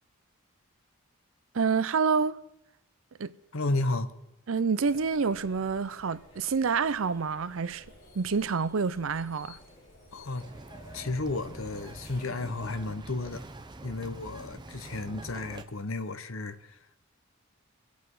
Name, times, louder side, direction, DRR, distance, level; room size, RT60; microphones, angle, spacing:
voice 1, 1.5-2.4 3.2-3.3 4.5-7.8 8.1-9.6, right 5 dB, 70° right, 0.5 m, -28 dB
voice 2, 3.5-4.1 10.1-10.5 10.9-13.5 13.8-16.8, left 2 dB, 70° left, 1.0 m, -33 dB
sound 1, 4.8-12.7, left 1 dB, 55° left, 5.7 m, -53 dB
Bird vocalization bird call bird song, 10.4-15.6, right 2 dB, 20° right, 0.7 m, -45 dB
23.0 x 8.3 x 4.8 m
head